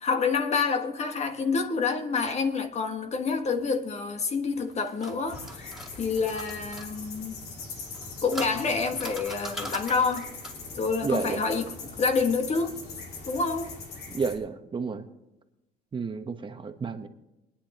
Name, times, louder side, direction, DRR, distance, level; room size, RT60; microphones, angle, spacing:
voice 1, 0.0-7.3 8.2-10.3 10.7-11.6 12.0-12.8 13.3-13.7, left 4 dB, 40° left, 1.5 m, -28 dB
sound 1, 4.6-6.9 7.9-10.7, right 1 dB, 5° right, 2.6 m, -41 dB
sound 2, 5.3-14.4, left 4 dB, 70° left, 2.8 m, -41 dB
voice 2, 11.0-11.4 14.1-15.0 15.9-17.1, right 5 dB, 30° right, 1.0 m, -31 dB
23.0 x 9.9 x 3.0 m
cardioid pair, 110°, 17 cm